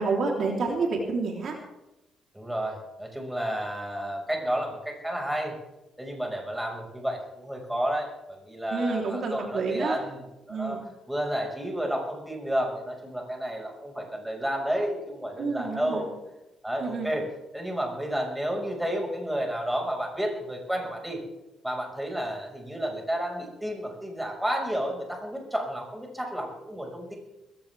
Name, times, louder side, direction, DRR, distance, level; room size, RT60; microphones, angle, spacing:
voice 1, 0.0-1.5 8.7-10.0 10.5-10.8 15.4-16.0 16.8-17.1, right 4 dB, 60° right, 0 dB, 3.5 m, -28 dB
voice 2, 2.3-5.5 6.0-10.8 11.1-16.2 16.6-17.2 17.5-21.2 21.6-27.1, equal, 5° right, 1 dB, 5.5 m, -31 dB
21.0 x 16.5 x 3.5 m, 0.95 s
cardioid pair, 90°, 0 cm